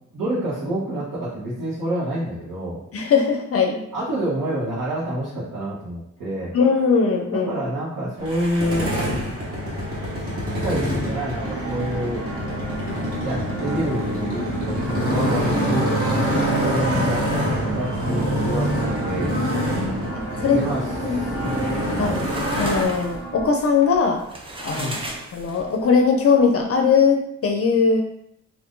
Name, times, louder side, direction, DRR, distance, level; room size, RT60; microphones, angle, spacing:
voice 1, 0.1-2.8 3.9-6.5 7.3-8.9 10.6-12.2 13.2-15.9 16.2-17.2 17.7-18.7 19.0-19.4 20.5-20.8 21.1-22.3 24.7-25.0, right 1 dB, 90° right, -10 dB, 1.1 m, -27 dB
voice 2, 2.9-3.8 6.5-7.5 19.7-20.1 20.4-20.6 21.0-21.2 22.0-22.2 22.6-24.2 24.6-25.0 25.3-28.0, left 5 dB, 50° left, 3 dB, 0.4 m, -20 dB
Motorcycle, 8.2-22.9, equal, 45° right, 1.0 m, -25 dB
sound 1, 11.4-23.5, right 2 dB, ahead, 1.1 m, -34 dB
sound 2, 21.9-25.9, right 1 dB, 20° right, 0.4 m, -36 dB
2.5 x 2.5 x 3.6 m, 0.75 s
wide cardioid pair, 130°, 31 cm